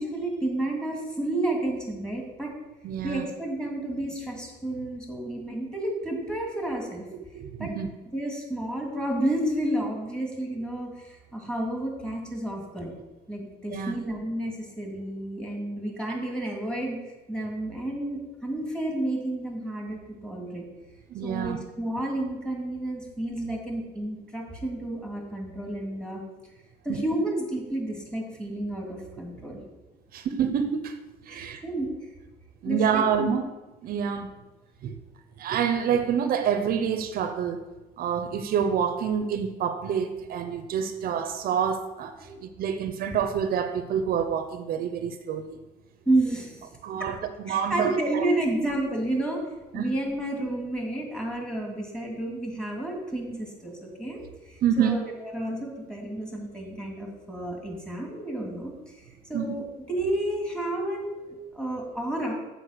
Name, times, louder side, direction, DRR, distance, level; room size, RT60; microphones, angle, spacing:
voice 1, 0.0-2.5 3.0-7.0 7.6-7.7 8.1-12.9 13.3-17.0 17.3-20.6 21.2-26.2 26.8-29.6 31.3-32.1 32.6-33.3 42.2-42.4 46.1-46.7 47.0-47.1 47.5-49.4 49.7-62.3, right 1 dB, 5° left, -1 dB, 2.3 m, -31 dB
voice 2, 2.8-3.2 7.3-7.9 13.7-13.9 21.1-21.6 26.9-27.0 30.1-30.9 31.2-31.6 32.6-33.5 33.8-34.3 34.8-35.0 35.4-37.6 38.0-45.6 46.8-47.2 47.4-48.2 49.7-49.9 54.6-55.0 59.3-59.5, right 7 dB, 60° right, 9 dB, 0.7 m, -27 dB
7.8 x 4.9 x 6.5 m, 1.1 s
cardioid pair, 110°, 17 cm